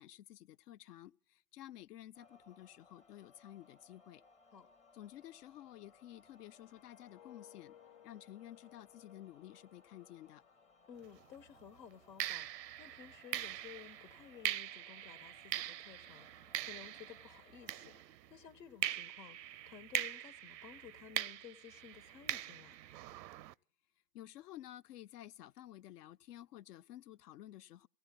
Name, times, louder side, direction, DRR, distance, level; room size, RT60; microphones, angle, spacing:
voice 1, 0.0-4.2 4.9-7.8 8.0-10.4 24.1-27.9, left 13 dB, 70° left, 0.6 m, -53 dB
sound 1, 2.1-18.0, left 3 dB, 15° left, 0.6 m, -66 dB
sound 2, 6.2-11.2 11.6-11.9, left 12 dB, 35° left, 0.9 m, -63 dB
voice 2, 10.9-12.5 12.8-22.8, left 8 dB, 85° left, 1.4 m, -55 dB
sound 3, 11.0-11.3 12.2-18.4 18.8-23.5, right 13 dB, 80° right, 0.6 m, -42 dB
29.0 x 16.5 x 2.3 m
hypercardioid pair, 125°, 49 cm